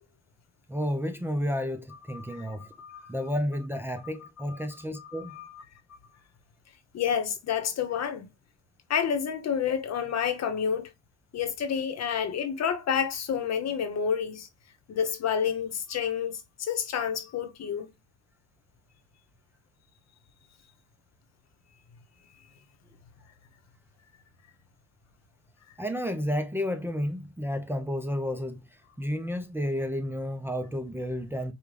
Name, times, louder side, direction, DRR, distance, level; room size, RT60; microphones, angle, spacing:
voice 1, 0.7-2.7 3.1-5.5 25.8-28.7 29.0-31.5, equal, 5° right, 0.5 m, -31 dB
voice 2, 2.1-3.1 5.0-5.6 6.9-8.3 8.9-10.9 11.3-14.5 14.9-17.9, left 7 dB, 60° left, 1.0 m, -29 dB
5.1 x 2.3 x 3.2 m
cardioid pair, 90°, 30 cm